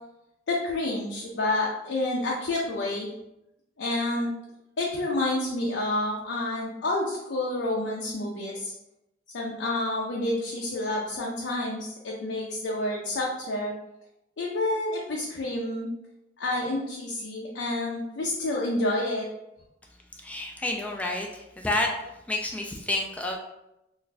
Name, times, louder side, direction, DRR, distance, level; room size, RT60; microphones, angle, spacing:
voice 1, 0.5-3.1 3.8-4.3 4.8-8.7 9.3-13.7 14.4-15.9 16.4-19.3, left 2 dB, 90° left, -3 dB, 0.5 m, -29 dB
voice 2, 20.2-21.9 22.3-23.4, left 2 dB, 10° left, 0 dB, 0.3 m, -29 dB
2.5 x 2.2 x 3.9 m, 0.88 s
head